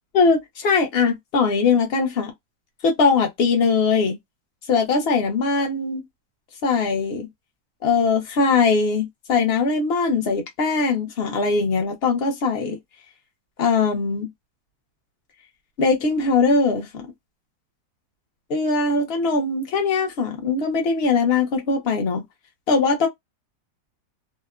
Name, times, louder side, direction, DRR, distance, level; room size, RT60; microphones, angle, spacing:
voice 1, 0.1-2.3 2.8-4.2 4.7-6.0 6.6-7.3 7.8-12.8 13.6-14.3 15.8-17.1 18.5-22.2 22.7-23.1, left 4 dB, 45° left, 1.0 m, -21 dB
2.9 x 2.1 x 2.4 m
omnidirectional pair, 1.7 m